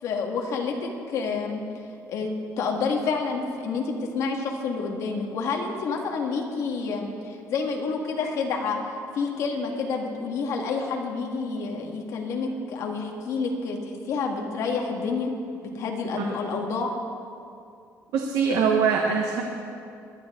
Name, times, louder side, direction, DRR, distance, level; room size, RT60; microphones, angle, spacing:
voice 1, 0.0-1.6 2.1-8.8 9.1-15.3 15.6-16.9, left 4 dB, 55° left, 1 dB, 1.6 m, -29 dB
voice 2, 18.1-19.4, right 6 dB, 65° right, 2 dB, 1.1 m, -23 dB
20.0 x 11.0 x 3.7 m, 2.5 s
cardioid pair, 175°, 6 cm